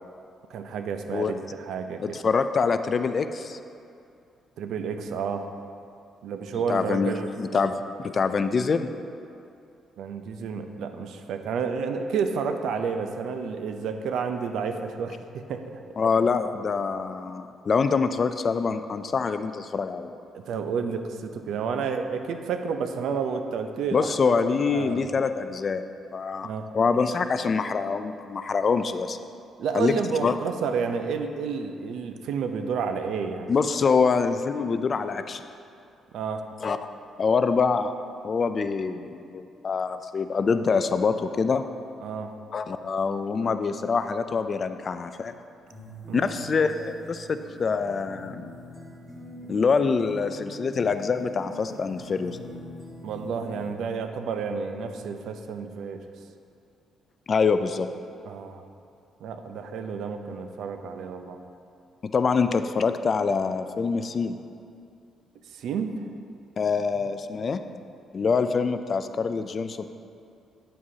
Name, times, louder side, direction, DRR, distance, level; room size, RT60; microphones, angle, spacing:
voice 1, 0.5-2.2 4.6-5.5 6.2-7.7 10.0-15.8 20.3-24.3 24.6-25.0 26.4-26.7 29.6-33.5 36.1-36.4 42.0-42.3 46.1-46.3 53.0-56.0 58.2-58.6 59.2-61.4 65.5-66.1, right 5 dB, 75° right, 7 dB, 0.5 m, -30 dB
voice 2, 2.0-3.6 6.7-8.9 16.0-20.1 23.9-25.8 26.1-26.5 26.7-29.2 29.7-29.9 30.2-30.4 33.5-35.4 36.6-36.8 37.2-37.9 38.2-41.6 42.5-45.3 46.1-48.5 49.5-52.4 57.3-57.9 62.1-64.4 66.6-67.6 68.1-69.8, left 5 dB, 40° left, 10 dB, 0.3 m, -25 dB
sound 1, 45.7-53.7, right 1 dB, 5° right, 1.6 m, -43 dB
9.8 x 7.6 x 2.8 m, 2.5 s
cardioid pair, 125°, 0 cm